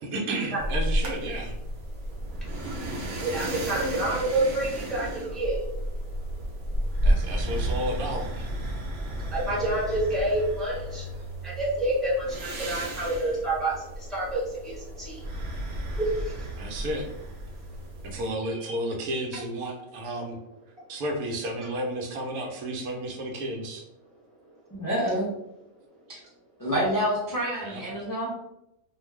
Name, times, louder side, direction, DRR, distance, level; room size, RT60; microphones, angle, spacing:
voice 1, 0.0-1.5 4.1-4.2 7.0-8.5 16.6-17.1 18.0-20.4 20.9-23.8 27.6-27.8, right 1 dB, 85° right, 2 dB, 1.1 m, -32 dB
sound 1, 0.6-18.3, right 1 dB, 65° right, 0.9 m, -32 dB
voice 2, 3.1-5.6 9.3-11.1 11.4-15.2 16.0-16.3 18.6-18.7, right 1 dB, ahead, -7 dB, 0.9 m, -28 dB
voice 3, 24.7-25.3 26.1-26.2 26.6-28.3, equal, 30° left, -7 dB, 0.3 m, -27 dB
2.5 x 2.2 x 3.2 m, 0.84 s
omnidirectional pair, 1.5 m